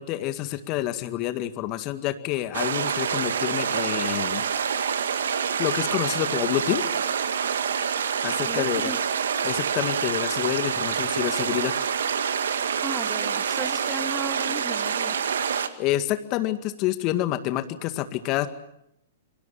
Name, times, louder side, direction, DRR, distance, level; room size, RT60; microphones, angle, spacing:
voice 1, 0.0-4.4 4.8-5.2 5.6-6.8 8.2-8.9 9.4-11.9 15.5-18.5, left 14 dB, 40° left, 10 dB, 2.0 m, -28 dB
sound 1, 2.5-15.7, right 7 dB, 70° right, 2.0 m, -26 dB
voice 2, 8.4-9.0 12.8-15.2, right 3 dB, 10° right, 8 dB, 2.7 m, -35 dB
28.5 x 24.5 x 7.3 m, 0.78 s
figure-of-eight pair, 110°, 0 cm